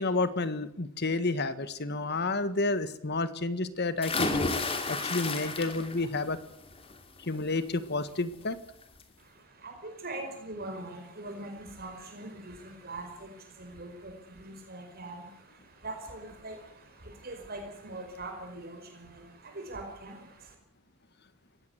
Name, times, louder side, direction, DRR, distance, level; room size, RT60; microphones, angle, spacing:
voice 1, 0.0-4.3 4.9-6.4 7.2-8.6, left 3 dB, 50° left, 13 dB, 1.6 m, -30 dB
sound 1, 4.0-6.1 6.5-6.9 8.3-8.4 8.8-8.9, left 3 dB, 25° left, 2.8 m, -31 dB
voice 2, 9.2-20.5, right 2 dB, 45° right, 4 dB, 5.1 m, -42 dB
21.5 x 17.0 x 9.5 m, 0.74 s
head